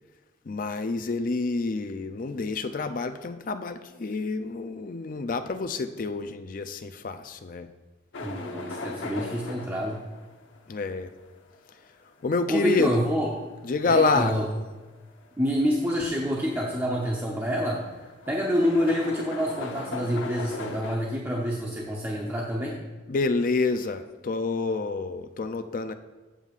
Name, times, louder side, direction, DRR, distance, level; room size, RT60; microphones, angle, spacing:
voice 1, 0.5-7.7 10.7-11.1 12.2-13.0 13.6-14.3 23.1-25.9, left 3 dB, 45° left, 9 dB, 0.4 m, -28 dB
sound 1, 8.1-21.0, left 2 dB, 75° left, 0.9 m, -40 dB
voice 2, 8.2-10.0 12.5-13.3 13.8-14.4 15.4-17.8 18.3-22.8, equal, 10° right, -3 dB, 0.8 m, -27 dB
15.5 x 7.2 x 2.5 m, 1.2 s
head